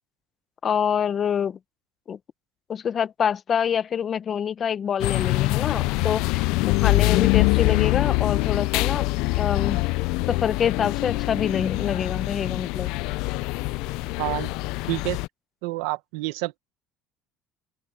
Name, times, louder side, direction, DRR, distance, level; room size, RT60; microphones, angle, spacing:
voice 1, 0.6-1.6 2.1-2.2 2.7-9.1 9.3-9.8 10.3-12.9, left 8 dB, 40° left, 0.8 m, -26 dB
sound 1, 5.0-15.3, left 23 dB, 75° left, 0.4 m, -24 dB
voice 2, 14.2-14.5 14.9-15.2 15.6-16.6, right 22 dB, 90° right, 1.5 m, -28 dB
open air
supercardioid pair, 110°, 0 cm